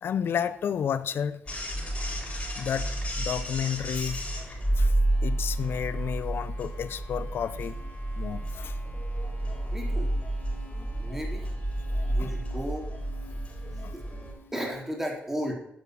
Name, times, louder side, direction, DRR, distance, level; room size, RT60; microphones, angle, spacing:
voice 1, 0.0-1.4 2.6-2.9 3.2-4.2 4.8-4.9 5.2-7.8 8.2-8.8 12.2-12.3 13.8-13.9, left 8 dB, 65° left, 0.5 m, -31 dB
sound 1, 1.5-14.3, right 1 dB, 35° left, 3.5 m, -30 dB
sound 2, 5.2-14.9, right 1 dB, 80° right, 4.0 m, -55 dB
voice 2, 9.7-10.1 11.0-11.5 12.1-12.9 13.8-14.0 14.5-15.5, equal, 10° right, 3.1 m, -34 dB
9.5 x 5.5 x 6.1 m
cardioid pair, 65°, 4 cm